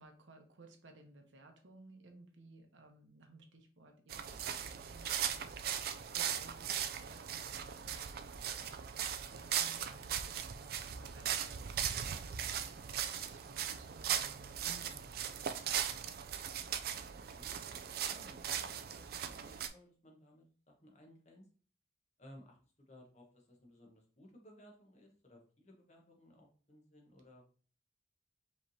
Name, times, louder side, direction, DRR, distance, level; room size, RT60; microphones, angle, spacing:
voice 1, 0.0-16.1, right 2 dB, 80° right, 4 dB, 0.9 m, -59 dB
sound 1, 4.1-19.7, right 9 dB, 50° right, 0.3 m, -39 dB
voice 2, 6.0-6.3 17.1-21.5 22.2-27.4, left 1 dB, 35° left, 0 dB, 1.0 m, -60 dB
5.1 x 3.2 x 2.7 m, 0.41 s
head